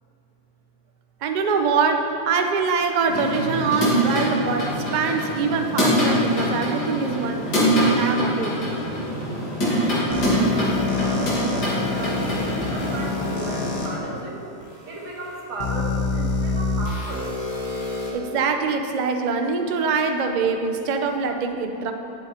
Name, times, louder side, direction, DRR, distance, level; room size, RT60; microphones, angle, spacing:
voice 1, 1.2-7.7 8.0-8.6 18.1-21.9, right 5 dB, 65° right, 5 dB, 0.4 m, -24 dB
sound 1, 3.1-14.0, equal, 85° left, 3.0 m, -24 dB
sound 2, 10.1-13.9 14.6-14.7 15.6-18.1, left 3 dB, 60° left, 1.9 m, -27 dB
voice 2, 10.1-14.4 14.9-17.3, right 2 dB, 85° right, -3 dB, 2.2 m, -35 dB
11.0 x 7.7 x 4.3 m, 2.8 s
omnidirectional pair, 1.7 m